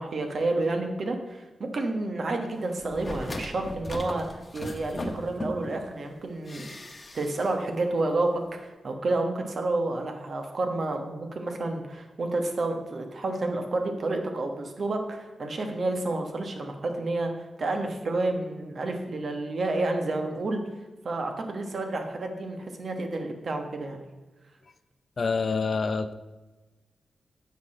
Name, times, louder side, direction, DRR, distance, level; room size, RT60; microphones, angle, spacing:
voice 1, 0.0-6.7 7.1-17.3 17.6-20.6 21.0-24.0, right 2 dB, 60° right, 4 dB, 1.3 m, -30 dB
sound 1, 2.8-5.8 6.4-7.5 7.8-7.9, left 1 dB, 30° left, 1.2 m, -37 dB
voice 2, 25.2-26.1, left 4 dB, 50° left, 11 dB, 0.5 m, -26 dB
7.3 x 5.9 x 6.4 m, 1.2 s
cardioid pair, 85°, 0 cm